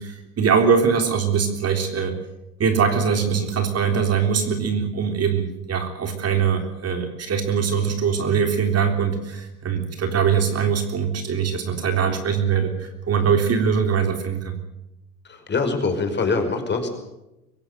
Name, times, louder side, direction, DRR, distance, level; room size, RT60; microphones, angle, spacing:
voice 1, 0.0-2.1 2.6-14.6, right 6 dB, 30° right, 5 dB, 3.6 m, -22 dB
voice 2, 15.2-16.9, left 4 dB, 25° left, 5 dB, 5.4 m, -24 dB
24.0 x 16.5 x 8.1 m, 0.95 s
hypercardioid pair, 95°, 46 cm